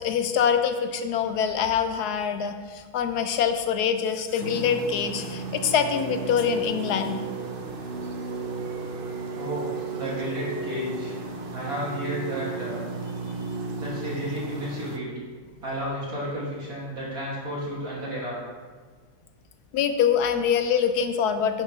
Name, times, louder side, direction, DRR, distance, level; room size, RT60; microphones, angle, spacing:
voice 1, 0.0-7.2 19.7-21.6, left 7 dB, 85° left, 8 dB, 1.2 m, -24 dB
sound 1, 4.4-15.0, right 4 dB, 50° right, 0.7 m, -34 dB
voice 2, 9.3-11.2 11.5-12.9 13.8-15.1 15.6-18.4, equal, 65° right, -6 dB, 3.0 m, -32 dB
11.0 x 6.7 x 3.3 m, 1.5 s
omnidirectional pair, 1.6 m